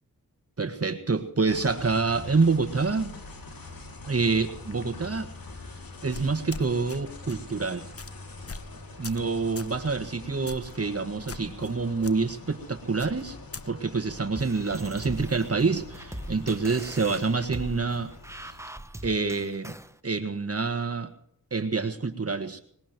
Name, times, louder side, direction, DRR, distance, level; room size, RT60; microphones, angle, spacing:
voice 1, 0.6-3.1 4.1-5.3 6.0-7.9 9.0-13.4 13.7-18.1 18.4-18.5 19.0-19.7 20.0-21.1 21.5-22.6, right 4 dB, 40° right, 7 dB, 1.6 m, -27 dB
sound 1, 1.5-18.7, left 3 dB, 70° left, 2.6 m, -44 dB
sound 2, 6.1-7.0 7.3-7.5 8.0-8.1 8.5-8.7 9.0-9.3 9.6-9.8 10.5-10.7 11.3-11.7 12.0-12.1 13.0-13.7, left 4 dB, 40° left, 0.9 m, -41 dB
sound 3, 14.4-19.9, right 1 dB, 10° right, 0.9 m, -41 dB
21.0 x 20.0 x 3.1 m, 0.69 s
cardioid pair, 50°, 36 cm